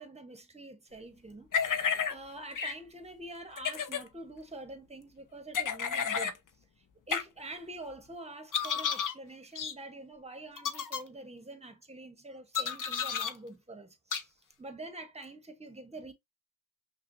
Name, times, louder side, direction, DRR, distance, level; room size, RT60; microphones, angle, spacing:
voice 1, 0.0-6.4 7.1-14.3 14.6-16.1, right 2 dB, 15° right, 1.1 m, -46 dB
sound 1, 1.5-2.1 2.6-2.7 3.6-4.0 5.5-6.4 7.1-7.2 8.5-9.1 9.6-9.7 10.6-11.0 12.5-13.3 14.1-14.2, left 7 dB, 45° left, 0.7 m, -31 dB
5.6 x 2.4 x 2.6 m
cardioid pair, 70°, 43 cm